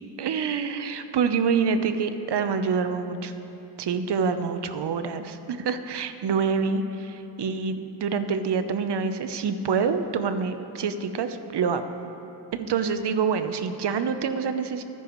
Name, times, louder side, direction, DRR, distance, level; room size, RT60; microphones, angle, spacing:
voice 1, 0.2-3.3 3.8-11.8 12.5-14.8, right 5 dB, 65° right, 9 dB, 0.9 m, -26 dB
23.5 x 10.5 x 3.2 m, 3.0 s
cardioid pair, 75°, 43 cm